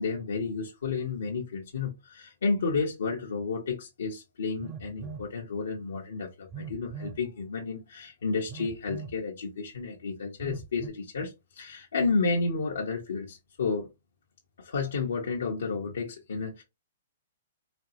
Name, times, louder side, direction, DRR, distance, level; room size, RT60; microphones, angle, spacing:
voice 1, 0.0-13.9 14.6-16.6, left 4 dB, 85° left, 0.9 m, -31 dB
Telephone, 4.6-5.3 6.5-7.2 8.5-9.2 10.4-10.9, right 6 dB, 25° right, 0.5 m, -40 dB
4.2 x 2.0 x 2.8 m
hypercardioid pair, 145°, 0 cm